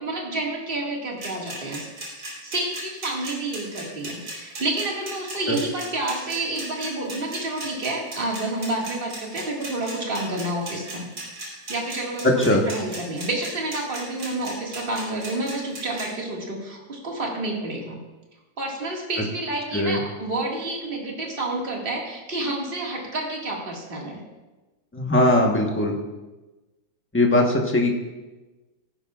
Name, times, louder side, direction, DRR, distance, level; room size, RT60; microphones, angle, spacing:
voice 1, 0.0-1.9 2.4-11.1 11.7-18.0 18.6-24.2, right 2 dB, 30° right, -2 dB, 2.0 m, -29 dB
sound 1, 1.2-16.0, right 2 dB, 65° right, 4.3 m, -36 dB
voice 2, 12.2-12.6 19.7-20.0 24.9-26.0 27.1-27.9, left 1 dB, 10° left, 1 dB, 0.8 m, -20 dB
17.0 x 10.5 x 2.4 m, 1.2 s
omnidirectional pair, 2.1 m